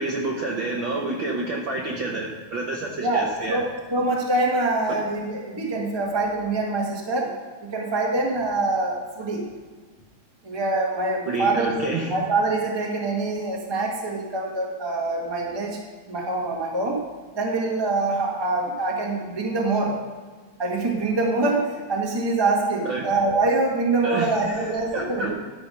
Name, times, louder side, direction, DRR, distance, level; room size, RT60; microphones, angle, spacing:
voice 1, 0.0-3.6 4.9-5.0 11.3-12.1 22.8-23.0 24.0-25.3, right 2 dB, 65° right, -1 dB, 1.2 m, -29 dB
voice 2, 3.0-7.3 7.6-9.4 10.4-15.8 16.1-17.0 17.3-20.0 20.6-25.3, right 2 dB, 20° right, -2 dB, 0.6 m, -25 dB
11.5 x 5.4 x 6.4 m, 1.4 s
omnidirectional pair, 3.4 m